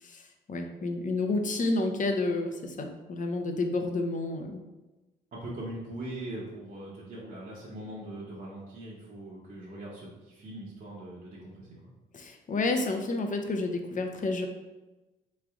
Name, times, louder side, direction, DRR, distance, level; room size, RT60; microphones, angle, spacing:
voice 1, 0.0-4.6 12.1-14.5, left 2 dB, 40° left, 5 dB, 0.7 m, -30 dB
voice 2, 5.3-11.7, right 1 dB, 40° right, -6 dB, 1.0 m, -41 dB
3.7 x 3.2 x 3.5 m, 1.1 s
cardioid pair, 90°, 20 cm